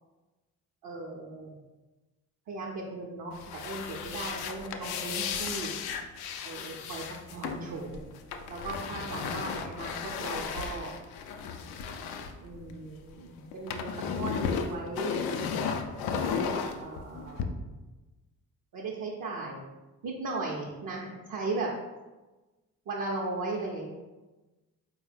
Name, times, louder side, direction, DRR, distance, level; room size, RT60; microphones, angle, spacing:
voice 1, 0.8-1.6 2.5-5.7 6.4-8.0 8.5-10.9 12.4-15.1 16.1-17.5 18.7-19.6 20.0-21.7 22.9-23.9, right 3 dB, 50° right, -2 dB, 0.6 m, -37 dB
sound 1, 3.3-13.1 13.4-17.4, left 6 dB, 65° left, 0.5 m, -35 dB
4.2 x 2.1 x 3.3 m, 1.2 s
hypercardioid pair, 40°, 41 cm